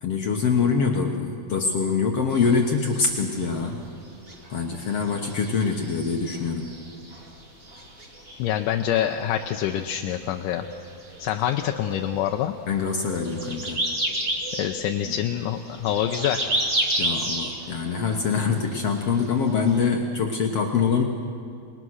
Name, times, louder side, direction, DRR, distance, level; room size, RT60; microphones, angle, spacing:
voice 1, 0.0-3.8 4.5-6.7 12.7-13.8 15.1-15.2 17.0-21.0, left 5 dB, 60° left, 2 dB, 1.7 m, -24 dB
sound 1, 2.3-19.9, right 1 dB, 25° right, 2.2 m, -33 dB
voice 2, 8.4-10.6 11.2-12.5 14.6-16.5, left 11 dB, 75° left, 4 dB, 2.1 m, -26 dB
27.5 x 20.0 x 6.4 m, 2.5 s
omnidirectional pair, 4.2 m